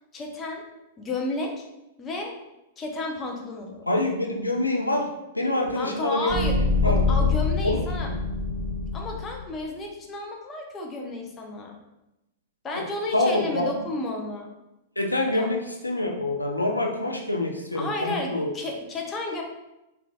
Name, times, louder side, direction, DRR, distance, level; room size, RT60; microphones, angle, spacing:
voice 1, 0.1-0.6 1.0-1.6 2.0-2.4 2.8-3.9 5.7-6.6 6.8-8.1 8.9-11.8 12.6-14.5 15.3-15.5 17.7-19.4, left 2 dB, 20° left, 1 dB, 0.5 m, -32 dB
voice 2, 3.9-5.1 5.3-6.4 6.8-7.0 7.6-7.8 8.1-8.2 12.7-12.8 13.1-13.6 15.0-18.5, left 2 dB, 85° left, 1 dB, 0.3 m, -26 dB
sound 1, 6.3-9.4, left 4 dB, 10° right, 1.0 m, -24 dB
3.1 x 2.4 x 2.3 m, 0.94 s
figure-of-eight pair, 100°, 0 cm